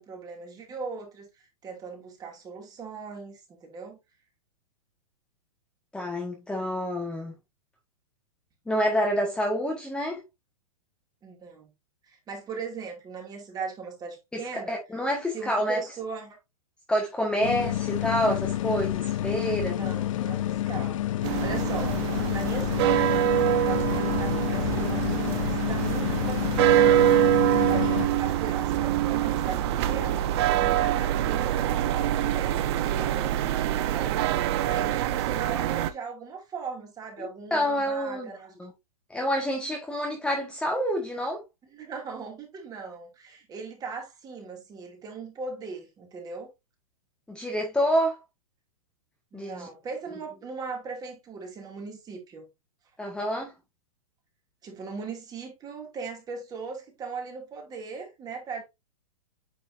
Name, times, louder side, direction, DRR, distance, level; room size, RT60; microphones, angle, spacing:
voice 1, 0.0-4.0 11.2-11.7 12.1-14.7 15.3-16.4 19.6-22.0 22.3-27.2 27.6-34.4 34.6-38.5 41.6-46.5 49.3-52.5 54.6-58.6, right 4 dB, 20° right, 2.4 m, -39 dB
voice 2, 5.9-7.3 8.7-10.2 14.3-15.8 16.9-19.8 37.5-38.3 38.6-38.7 39.1-41.4 47.3-48.2 49.3-49.7 53.0-53.5, equal, 5° left, 1.5 m, -27 dB
sound 1, 17.4-28.1, left 13 dB, 60° left, 0.6 m, -29 dB
sound 2, 21.2-35.9, right 12 dB, 45° right, 0.8 m, -25 dB
9.1 x 4.3 x 2.6 m
hypercardioid pair, 135°, 19 cm